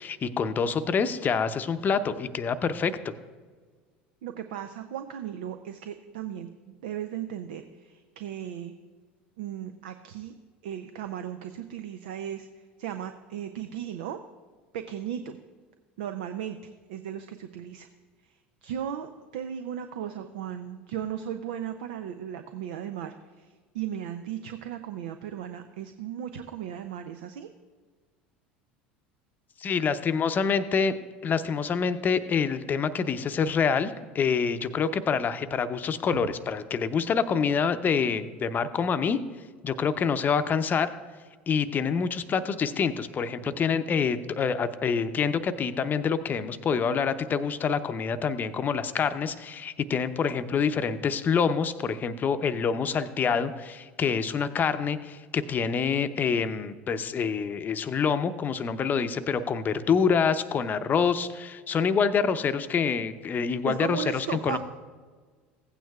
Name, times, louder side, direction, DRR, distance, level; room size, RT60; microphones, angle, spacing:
voice 1, 0.0-3.1 29.6-30.9 31.2-39.2 39.6-40.9 41.5-64.6, left 6 dB, 35° left, 11 dB, 0.7 m, -26 dB
voice 2, 4.2-8.7 9.4-10.3 10.6-14.2 14.7-15.4 16.0-17.9 18.2-18.3 18.6-27.5 63.7-64.6, right 9 dB, 70° right, 8 dB, 0.5 m, -36 dB
16.0 x 9.0 x 2.4 m, 1.5 s
hypercardioid pair, 75°, 5 cm